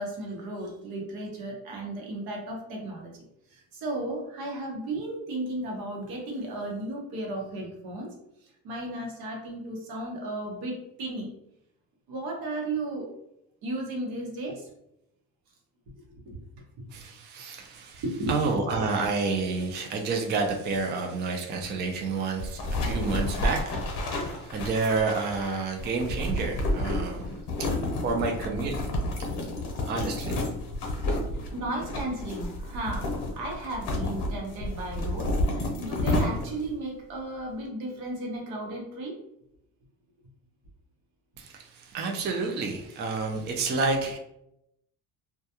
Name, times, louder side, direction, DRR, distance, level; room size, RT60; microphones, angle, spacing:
voice 1, 0.0-3.1 3.5-8.1 8.6-11.3 12.1-13.1 13.6-14.7 16.0-16.4 18.0-18.4 31.5-39.1, right 1 dB, 80° right, 0 dB, 0.9 m, -34 dB
voice 2, 16.9-27.3 28.0-28.7 29.9-30.4 41.4-44.2, right 4 dB, 30° right, 2 dB, 0.4 m, -29 dB
sound 1, 22.4-36.7, left 1 dB, 75° left, 0.8 m, -30 dB
2.3 x 2.2 x 2.8 m, 0.80 s
cardioid pair, 110°, 36 cm